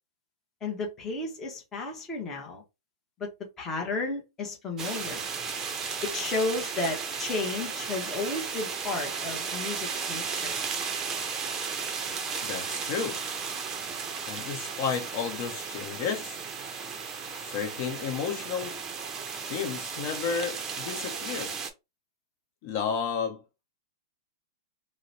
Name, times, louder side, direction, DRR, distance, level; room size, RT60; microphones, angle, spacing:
voice 1, 0.6-2.6 3.2-3.3 3.6-5.3 6.0-10.6, left 3 dB, 15° left, 0.9 m, -33 dB
sound 1, 4.8-21.7, right 6 dB, 20° right, 0.6 m, -35 dB
voice 2, 12.4-13.2 14.3-16.4 17.4-18.8 19.5-21.5 22.6-23.4, left 6 dB, 45° left, 0.9 m, -32 dB
2.9 x 2.1 x 3.9 m
hypercardioid pair, 150°, 2 cm